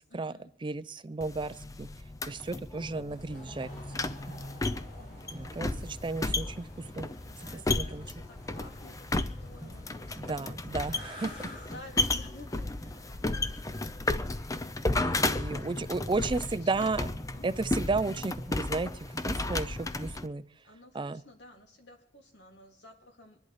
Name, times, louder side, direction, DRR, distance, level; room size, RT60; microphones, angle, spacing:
voice 1, 0.1-0.5 5.0-5.3 7.3-10.8 11.3-13.1 15.2-16.9 17.3-17.4 18.1-18.3 20.6-23.4, left 2 dB, 80° left, 2 dB, 2.6 m, -53 dB
voice 2, 0.6-1.9 2.3-3.7 5.3-7.1 7.7-8.0 10.2-11.3 15.0-17.1 17.4-20.4 20.9-21.2, right 3 dB, 30° right, 14 dB, 0.5 m, -33 dB
sound 1, 1.2-20.3, left 2 dB, 20° left, 0.5 m, -34 dB
sound 2, 3.1-13.3, left 1 dB, 65° left, 4.9 m, -51 dB
sound 3, 3.3-20.1, right 1 dB, 45° left, 5.2 m, -53 dB
25.0 x 11.0 x 3.2 m, 0.72 s
head